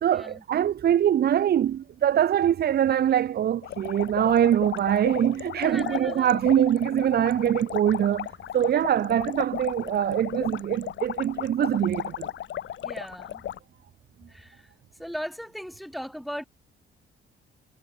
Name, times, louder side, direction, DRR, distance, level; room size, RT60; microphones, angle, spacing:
voice 1, 0.0-8.3 8.5-12.3, right 10 dB, 55° right, 0.7 m, -23 dB
sound 1, 3.6-13.6, left 11 dB, 70° left, 3.1 m, -35 dB
voice 2, 5.6-6.3 12.8-13.4 14.3-14.6 15.0-16.5, equal, ahead, 3.7 m, -37 dB
cardioid pair, 90°, 20 cm